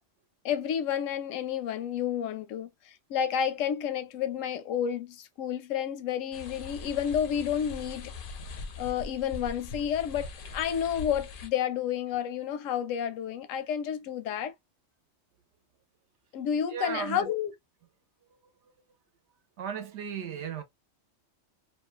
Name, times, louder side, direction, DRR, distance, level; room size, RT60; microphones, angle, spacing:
voice 1, 0.4-8.1 8.8-14.5 16.3-17.5, left 9 dB, 85° left, 0.9 m, -30 dB
sound 1, 6.3-11.5, left 3 dB, 60° left, 0.6 m, -41 dB
voice 2, 16.7-17.3 18.3-18.4 18.6-18.7 19.6-20.6, right 7 dB, 70° right, 0.8 m, -36 dB
2.5 x 2.2 x 2.3 m
omnidirectional pair, 1.3 m